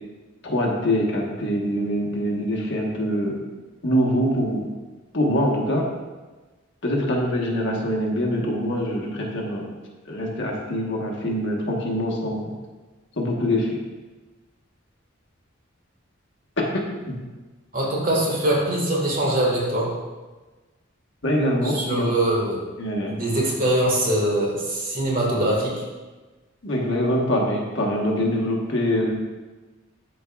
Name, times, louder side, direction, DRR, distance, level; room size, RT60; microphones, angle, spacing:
voice 1, 0.4-3.4 3.8-4.7 5.1-5.9 6.8-9.7 10.1-12.5 13.2-13.7 16.6-17.2 21.2-22.1 22.8-23.1 26.6-29.1, equal, 65° left, -1 dB, 1.3 m, -24 dB
voice 2, 17.7-19.9 21.6-22.6 23.1-25.8, right 1 dB, 45° right, -3 dB, 1.7 m, -23 dB
13.0 x 4.5 x 2.3 m, 1.2 s
head